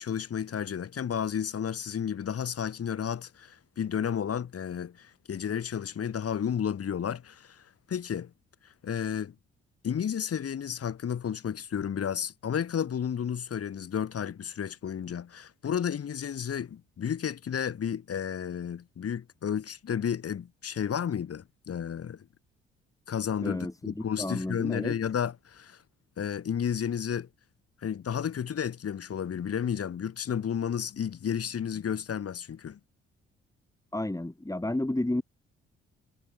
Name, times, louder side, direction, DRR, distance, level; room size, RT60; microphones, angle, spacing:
voice 1, 0.0-8.3 8.6-9.3 9.8-22.3 23.1-25.8 26.2-27.3 27.8-32.8, left 8 dB, 50° left, 7.6 m, -32 dB
voice 2, 23.4-25.0 33.9-35.2, left 1 dB, 10° left, 5.6 m, -31 dB
hypercardioid pair, 45°, 30 cm